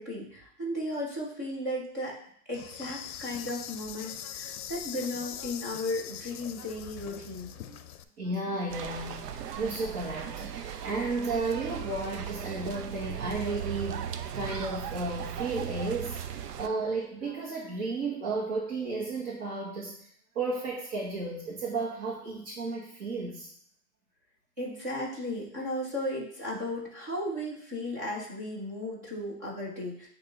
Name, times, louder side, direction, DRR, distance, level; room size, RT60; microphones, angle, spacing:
voice 1, 0.0-2.2 2.5-7.5 24.6-30.1, left 1 dB, 15° right, -5 dB, 0.3 m, -35 dB
Insect, 2.5-8.0, left 10 dB, 65° left, 0.6 m, -42 dB
voice 2, 8.2-20.0 20.3-23.5, right 3 dB, 40° right, -6 dB, 1.6 m, -33 dB
sound 1, 8.7-16.7, right 8 dB, 85° right, 0.7 m, -37 dB
8.5 x 2.9 x 3.8 m, 0.65 s
hypercardioid pair, 150°, 47 cm